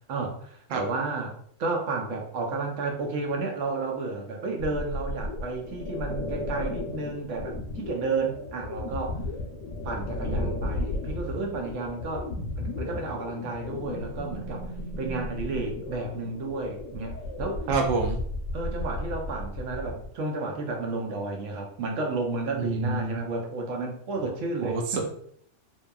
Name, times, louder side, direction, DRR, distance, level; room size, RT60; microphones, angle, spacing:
voice 1, 0.1-1.3 1.6-9.2 9.8-12.3 12.6-14.7 15.0-17.6 18.5-25.1, right 3 dB, 85° right, 2 dB, 0.9 m, -32 dB
sound 1, 4.6-20.1, left 2 dB, 80° left, 0.9 m, -34 dB
voice 2, 17.7-18.2 22.6-23.2 24.6-25.0, right 3 dB, 60° right, 1 dB, 0.6 m, -27 dB
2.8 x 2.2 x 2.2 m, 0.63 s
omnidirectional pair, 1.2 m